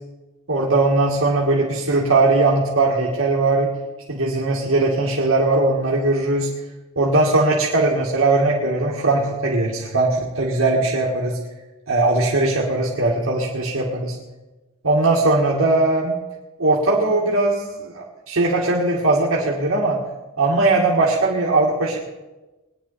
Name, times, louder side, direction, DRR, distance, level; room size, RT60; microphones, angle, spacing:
voice 1, 0.5-3.7 4.1-6.5 7.0-11.4 11.9-14.1 14.8-16.2 16.6-20.0 20.4-22.0, right 2 dB, 75° right, -3 dB, 1.9 m, -19 dB
21.5 x 10.0 x 4.2 m, 1.1 s
head